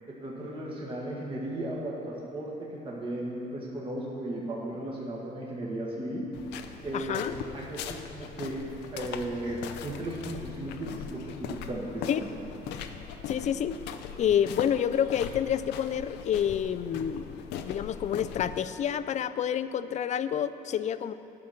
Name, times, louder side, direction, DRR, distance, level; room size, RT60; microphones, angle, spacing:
voice 1, 0.2-6.2 6.8-8.6 8.9-12.4, right 1 dB, 30° right, -4 dB, 1.7 m, -35 dB
sound 1, 6.3-18.6, left 8 dB, 85° left, 0.6 m, -40 dB
voice 2, 6.9-7.4 12.1-12.2 13.3-13.8 14.2-21.1, left 9 dB, 45° left, 13 dB, 0.4 m, -28 dB
10.5 x 5.9 x 6.5 m, 2.7 s
cardioid pair, 110°, 17 cm